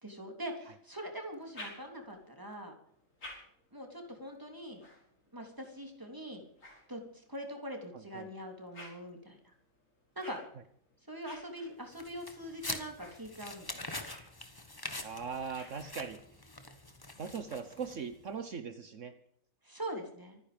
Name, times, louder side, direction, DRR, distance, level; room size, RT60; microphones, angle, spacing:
voice 1, 0.0-2.7 3.7-4.8 5.3-6.4 6.9-9.5 10.1-10.4 11.1-13.8 19.6-20.4, equal, 15° right, 3 dB, 3.4 m, -43 dB
sound 1, 1.3-2.3 2.9-7.5 8.1-16.4, left 1 dB, 70° left, 6.0 m, -55 dB
voice 2, 7.9-8.3 15.0-16.2 17.2-19.1, right 6 dB, 65° right, 9 dB, 1.5 m, -40 dB
sound 2, 11.9-18.2, left 2 dB, 15° left, 1.5 m, -44 dB
25.5 x 9.9 x 5.3 m, 0.67 s
omnidirectional pair, 1.4 m